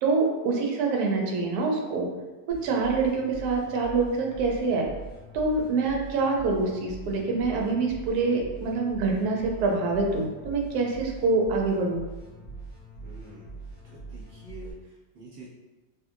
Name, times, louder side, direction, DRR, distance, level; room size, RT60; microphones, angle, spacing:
voice 1, 0.0-2.1 2.6-4.8 5.3-12.0, right 3 dB, 70° right, 0 dB, 1.0 m, -25 dB
sound 1, 2.5-14.7, right 3 dB, 50° left, 0.9 m, -43 dB
voice 2, 13.0-13.5 13.8-15.5, right 1 dB, 30° right, -9 dB, 1.1 m, -47 dB
2.7 x 2.6 x 2.4 m, 1.2 s
omnidirectional pair, 2.0 m